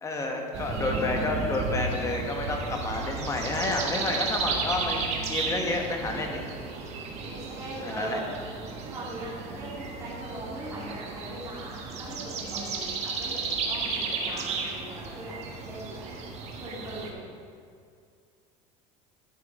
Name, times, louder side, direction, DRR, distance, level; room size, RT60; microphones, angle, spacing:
voice 1, 0.0-6.4 7.8-8.2, left 2 dB, 20° left, 1 dB, 1.2 m, -30 dB
sound 1, 0.5-17.1, right 4 dB, 40° right, 1.3 m, -34 dB
voice 2, 7.2-8.3 8.9-15.4 15.6-16.1 16.6-17.2, right 1 dB, 20° right, -8 dB, 2.3 m, -40 dB
11.5 x 6.1 x 4.7 m, 2.3 s
cardioid pair, 140°, 16 cm